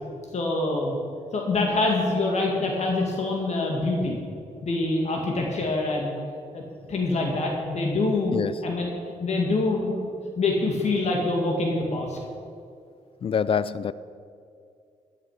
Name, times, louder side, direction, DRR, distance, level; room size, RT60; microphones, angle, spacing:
voice 1, 0.3-1.0 1.3-4.2 4.6-6.1 6.5-6.6 6.9-8.3 8.6-8.9 9.2-10.1 10.4-12.2, left 2 dB, 60° left, 0 dB, 2.2 m, -25 dB
voice 2, 13.2-13.9, left 7 dB, 45° left, 17 dB, 0.5 m, -25 dB
14.0 x 10.0 x 5.0 m, 2.4 s
cardioid pair, 90°, 13 cm